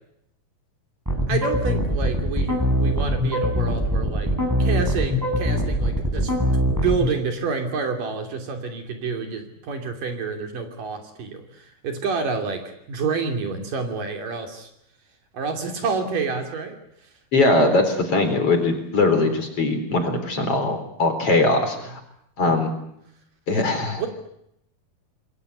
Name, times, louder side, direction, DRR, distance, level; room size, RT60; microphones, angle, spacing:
sound 1, 1.1-7.1, equal, 5° right, 6.4 m, -22 dB
voice 1, 1.3-4.3 4.6-6.3 6.7-14.7 15.3-16.8 19.2-19.3 22.4-22.6 24.0-24.1, right 5 dB, 60° right, 5 dB, 4.4 m, -28 dB
voice 2, 17.3-22.0 22.4-22.7 23.5-24.0, left 2 dB, 40° left, 7 dB, 4.7 m, -21 dB
27.5 x 21.5 x 8.1 m, 0.78 s
omnidirectional pair, 4.4 m